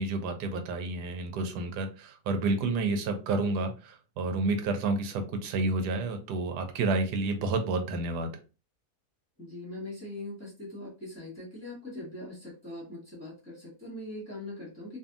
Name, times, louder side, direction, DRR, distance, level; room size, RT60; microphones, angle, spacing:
voice 1, 0.0-8.3, right 3 dB, 85° right, 6 dB, 1.2 m, -30 dB
voice 2, 9.4-15.0, left 1 dB, 10° left, -6 dB, 1.1 m, -41 dB
2.6 x 2.6 x 2.4 m, 0.32 s
omnidirectional pair, 1.7 m